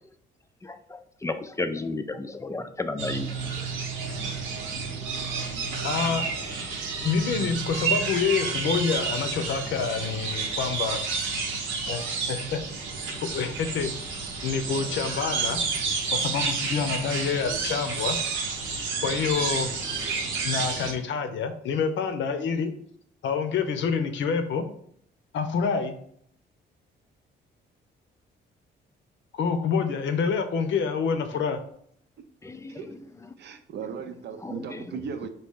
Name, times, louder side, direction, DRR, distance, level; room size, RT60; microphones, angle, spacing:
voice 1, 0.6-3.7 31.3-31.4 32.4-33.3 33.8-34.0 34.4-35.0, left 3 dB, 15° left, 9 dB, 0.4 m, -34 dB
sound 1, 3.0-20.9, right 5 dB, 80° right, 0.9 m, -30 dB
voice 2, 5.8-6.3 7.0-11.0 11.8-12.6 13.3-13.9 14.4-15.6 16.1-18.2 19.0-19.7 20.4-22.7 23.2-24.6 25.3-25.9 29.3-31.6, left 6 dB, 70° left, 7 dB, 0.7 m, -27 dB
voice 3, 33.4-35.3, right 7 dB, 60° right, 8 dB, 0.6 m, -37 dB
4.2 x 2.8 x 3.6 m, 0.65 s
cardioid pair, 90°, 20 cm